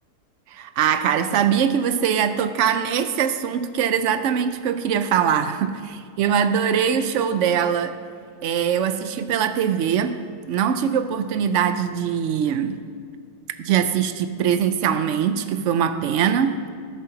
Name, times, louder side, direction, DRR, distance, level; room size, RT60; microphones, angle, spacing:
voice 1, 0.5-8.0 8.4-12.8 13.6-16.6, right 8 dB, 75° right, 11 dB, 0.7 m, -22 dB
13.0 x 6.5 x 5.8 m, 2.2 s
omnidirectional pair, 1.8 m